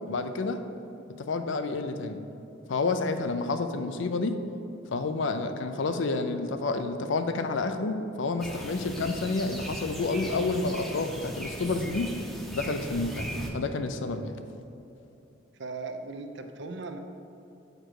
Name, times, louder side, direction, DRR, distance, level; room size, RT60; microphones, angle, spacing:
voice 1, 0.1-0.6 1.2-2.2 2.7-4.4 4.9-12.1 12.5-13.3 13.5-14.3, left 3 dB, 75° left, 8 dB, 0.5 m, -29 dB
sound 1, 8.4-13.5, equal, ahead, 0.7 m, -38 dB
voice 2, 15.6-17.0, right 3 dB, 65° right, 6 dB, 0.6 m, -38 dB
6.6 x 5.1 x 4.6 m, 2.9 s
head